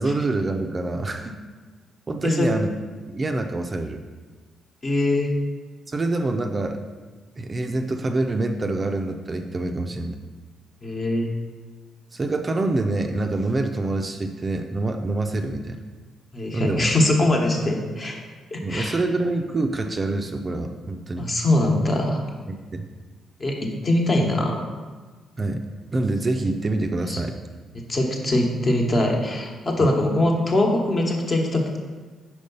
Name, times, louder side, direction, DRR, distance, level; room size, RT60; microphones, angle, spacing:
voice 1, 0.0-1.3 2.1-2.7 3.1-4.0 5.9-6.8 7.4-10.2 12.1-15.8 16.5-16.9 18.6-21.3 22.5-22.9 25.4-25.6 25.9-27.3 29.8-29.9, right 2 dB, 30° right, 5 dB, 0.5 m, -26 dB
voice 2, 4.8-5.3 10.8-11.3 16.3-18.2 18.5-19.0 21.1-22.2 23.4-24.6 27.1-27.2 27.9-31.8, left 1 dB, 35° left, 1 dB, 1.2 m, -22 dB
5.1 x 4.6 x 5.4 m, 1.4 s
cardioid pair, 90°, 0 cm